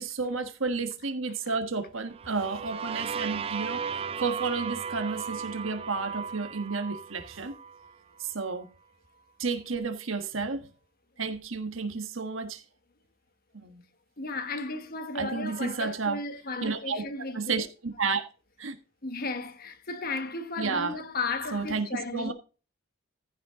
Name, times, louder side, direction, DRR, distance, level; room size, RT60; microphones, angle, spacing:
voice 1, 0.0-3.8 4.2-7.5 8.2-8.7 9.4-10.7 11.2-12.6 13.5-13.8 15.1-16.2 16.6-17.0 17.3-18.3 18.6-18.8 20.6-20.9 21.5-21.9 22.1-22.3, right 4 dB, 75° right, 1.4 m, -31 dB
sound 1, 2.1-7.9, right 6 dB, 30° right, 0.4 m, -36 dB
voice 2, 14.2-17.7 19.0-22.3, left 3 dB, 45° left, 1.2 m, -34 dB
15.0 x 5.7 x 3.7 m
head